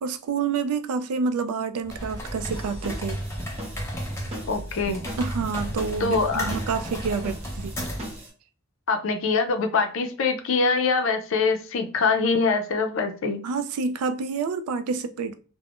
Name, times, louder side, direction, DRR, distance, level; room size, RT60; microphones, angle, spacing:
voice 1, 0.0-3.2 5.2-7.7 13.4-15.4, right 5 dB, 90° right, 0.3 m, -28 dB
sound 1, 1.8-8.2, equal, 10° left, 0.5 m, -33 dB
sound 2, 2.4-8.3, right 1 dB, 30° right, 0.7 m, -40 dB
voice 2, 4.5-5.0 6.0-6.5 8.9-13.4, left 4 dB, 60° left, 0.5 m, -24 dB
3.4 x 2.0 x 2.4 m
head